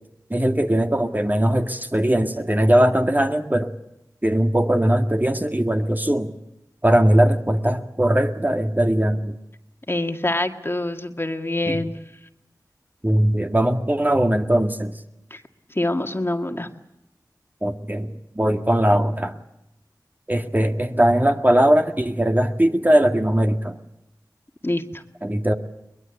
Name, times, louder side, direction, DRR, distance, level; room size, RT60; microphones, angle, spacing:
voice 1, 0.3-3.7 4.2-6.3 6.8-9.3 11.7-11.8 13.0-14.9 17.6-18.1 18.4-19.4 20.3-23.7 25.2-25.5, right 1 dB, 25° right, 5 dB, 1.9 m, -20 dB
voice 2, 9.9-12.0 15.3-15.4 15.7-16.7 24.6-25.0, left 1 dB, 35° left, 6 dB, 1.9 m, -25 dB
22.5 x 20.5 x 8.2 m, 0.87 s
wide cardioid pair, 40°, 7 cm